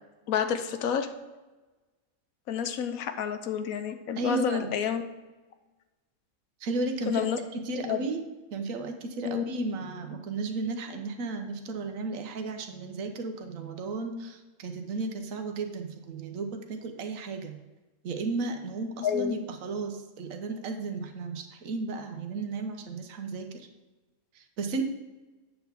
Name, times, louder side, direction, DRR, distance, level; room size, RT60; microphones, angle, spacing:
voice 1, 0.3-1.1 2.5-5.0 7.1-7.4 7.8-8.0 9.2-9.4 19.0-19.4, left 8 dB, 80° left, 9 dB, 1.1 m, -29 dB
voice 2, 4.2-4.7 6.6-8.2 8.5-17.6 18.0-23.7 24.3-24.8, right 3 dB, 70° right, 5 dB, 1.3 m, -34 dB
8.4 x 4.0 x 7.0 m, 1.2 s
omnidirectional pair, 1.5 m